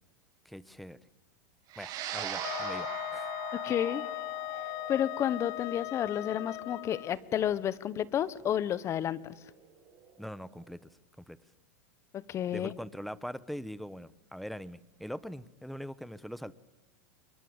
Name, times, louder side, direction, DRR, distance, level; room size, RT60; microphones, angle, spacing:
voice 1, 0.4-1.0 1.8-3.3 10.2-10.8 11.3-11.4 12.5-16.5, equal, ahead, 18 dB, 1.1 m, -42 dB
sound 1, 1.7-10.3, right 8 dB, 40° right, 7.4 m, -42 dB
Wind instrument woodwind instrument, 2.4-7.1, left 20 dB, 50° left, 1.1 m, -38 dB
sound 2, 3.6-5.9, left 12 dB, 65° left, 5.4 m, -55 dB
voice 2, 3.7-4.0 4.9-9.3 12.1-12.7, left 10 dB, 30° left, 18 dB, 1.2 m, -31 dB
28.5 x 24.0 x 8.2 m, 0.97 s
supercardioid pair, 130°, 10 cm